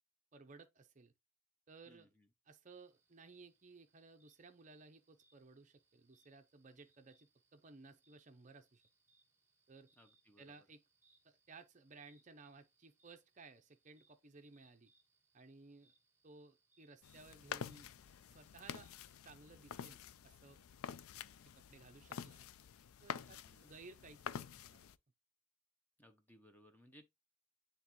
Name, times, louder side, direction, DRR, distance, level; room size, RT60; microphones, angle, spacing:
voice 1, 0.3-1.1 1.7-2.1 2.5-8.8 9.7-9.9 10.4-10.8 11.2-14.9 15.3-15.9 16.2-17.9 18.3-18.9 19.2-20.0 20.2-20.6 21.5-22.4 23.0-24.9, right 3 dB, 35° right, 0.6 m, -59 dB
voice 2, 1.9-2.3 10.0-10.6 23.1-23.8 26.0-27.0, equal, 10° left, 0.7 m, -64 dB
sound 1, 2.7-19.1, right 3 dB, 10° right, 1.3 m, -77 dB
sound 2, 17.0-25.0, left 8 dB, 75° left, 0.4 m, -48 dB
9.5 x 3.4 x 3.0 m
head